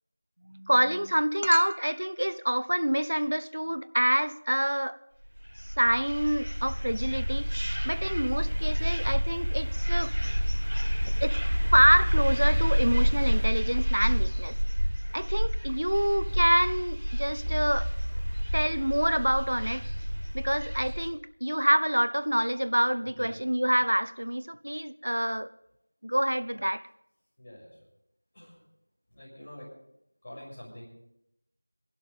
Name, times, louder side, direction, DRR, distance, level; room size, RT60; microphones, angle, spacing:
voice 1, 0.4-5.0 5.8-7.5 7.8-10.1 11.2-11.4 11.7-14.5 15.1-17.9 18.5-19.8 20.3-25.5 26.0-26.8, equal, 80° right, 0.9 m, -26 dB
sound 1, 5.4-21.1, equal, 65° right, 5.8 m, -28 dB
voice 2, 23.1-23.4 27.4-27.8 28.3-28.6 29.1-29.7 30.2-30.9, left 1 dB, 25° left, 6.6 m, -46 dB
24.0 x 12.0 x 3.5 m
figure-of-eight pair, 175°, 0 cm